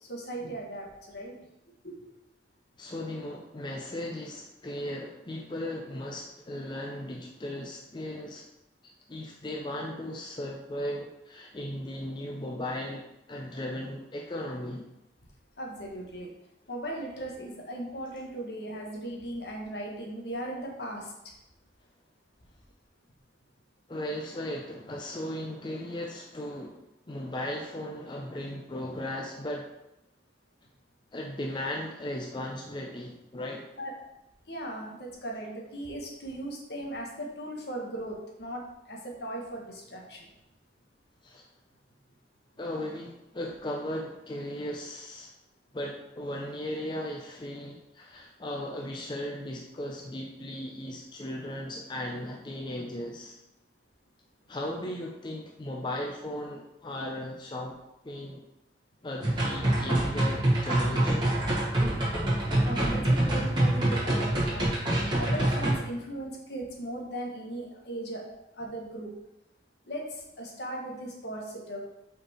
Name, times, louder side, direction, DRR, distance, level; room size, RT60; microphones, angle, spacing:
voice 1, 0.0-1.3 1.8-2.1 11.4-11.5 15.6-16.3 16.7-21.3 33.8-33.9 34.5-40.3 62.6-64.8 65.2-68.3 68.6-69.1 69.9-71.8, right 1 dB, 65° left, -1 dB, 1.3 m, -38 dB
voice 2, 2.8-8.5 8.8-14.9 23.9-26.8 27.1-29.7 31.1-33.7 41.2-41.5 42.6-45.3 45.7-53.4 54.5-57.8 58.0-58.4 59.0-61.4, left 1 dB, 25° left, 0 dB, 0.5 m, -37 dB
sound 1, 59.2-65.7, right 1 dB, 25° right, 1.9 m, -26 dB
5.3 x 4.4 x 4.3 m, 0.91 s
head